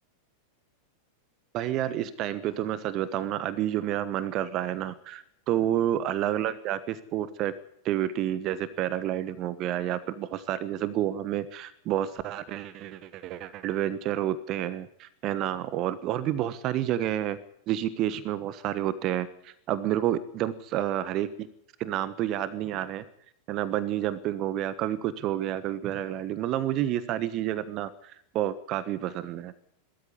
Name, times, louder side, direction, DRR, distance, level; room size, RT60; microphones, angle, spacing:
voice 1, 1.5-7.5 7.8-17.4 17.7-21.5 21.8-23.0 23.5-29.5, right 12 dB, 35° right, 16 dB, 1.2 m, -29 dB
20.0 x 13.5 x 9.8 m, 0.70 s
figure-of-eight pair, 90°, 0 cm